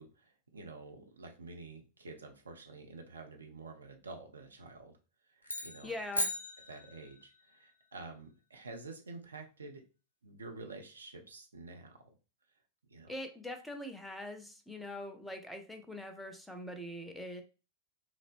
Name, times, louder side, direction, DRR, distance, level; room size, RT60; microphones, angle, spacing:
voice 1, 0.0-5.0 5.3-5.9 6.7-9.8 10.2-12.2 12.9-13.1, right 3 dB, 75° right, 3 dB, 0.5 m, -49 dB
sound 1, 5.4-7.4, left 1 dB, 85° left, 0.4 m, -37 dB
voice 2, 5.8-6.3 13.1-17.4, left 1 dB, 5° left, 6 dB, 0.4 m, -43 dB
2.8 x 2.0 x 2.4 m, 0.33 s
figure-of-eight pair, 90°, 0 cm